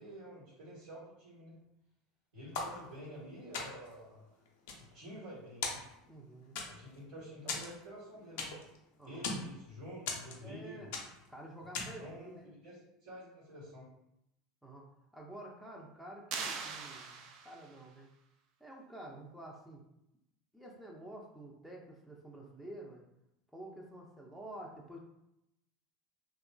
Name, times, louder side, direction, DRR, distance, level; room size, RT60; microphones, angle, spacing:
voice 1, 0.0-1.6 2.3-4.2 4.8-5.8 6.7-8.5 9.0-10.9 12.0-13.9, equal, 80° right, -8 dB, 1.2 m, -49 dB
sound 1, 2.5-3.2 3.5-4.0 4.5-5.3 5.6-6.2 6.6-7.0 7.5-8.8 9.0-9.5 10.1-10.6 10.9-11.3 11.7-12.1, left 4 dB, 70° left, 0.5 m, -39 dB
voice 2, 6.1-6.5 9.0-9.2 10.4-10.9 11.3-12.4 14.6-14.9 15.1-18.1 18.6-19.8 20.5-23.0 23.5-25.0, right 1 dB, 5° right, -2 dB, 0.5 m, -49 dB
sound 2, 16.3-17.8, right 5 dB, 55° right, 0.4 m, -41 dB
2.9 x 2.4 x 2.3 m, 0.83 s
hypercardioid pair, 80°, 0 cm